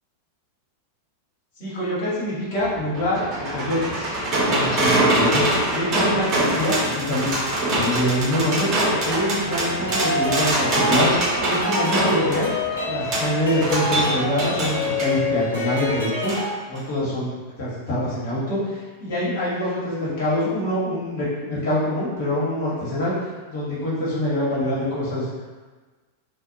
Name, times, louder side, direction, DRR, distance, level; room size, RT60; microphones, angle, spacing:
voice 1, 1.6-7.3 7.6-12.5 12.8-17.3 17.6-25.3, left 1 dB, 55° left, -8 dB, 1.2 m, -25 dB
sound 1, 2.6-15.1 16.3-16.4 16.8-16.9, right 1 dB, 35° right, 0.8 m, -24 dB
sound 2, 9.1-16.5, left 2 dB, 85° left, 0.9 m, -27 dB
2.5 x 2.2 x 2.6 m, 1.3 s
figure-of-eight pair, 90°, 0 cm